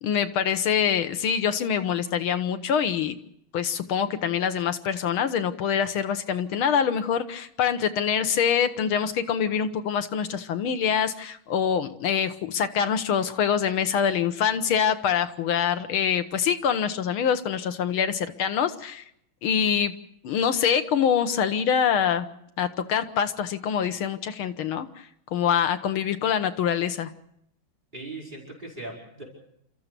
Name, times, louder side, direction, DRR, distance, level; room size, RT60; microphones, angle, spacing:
voice 1, 0.0-3.2 3.5-19.0 19.4-19.9 20.2-22.3 22.6-24.9 25.3-27.1, left 8 dB, 85° left, 9 dB, 2.0 m, -25 dB
voice 2, 27.9-29.2, right 2 dB, 20° right, -3 dB, 5.4 m, -39 dB
29.5 x 14.0 x 6.8 m, 0.75 s
omnidirectional pair, 2.2 m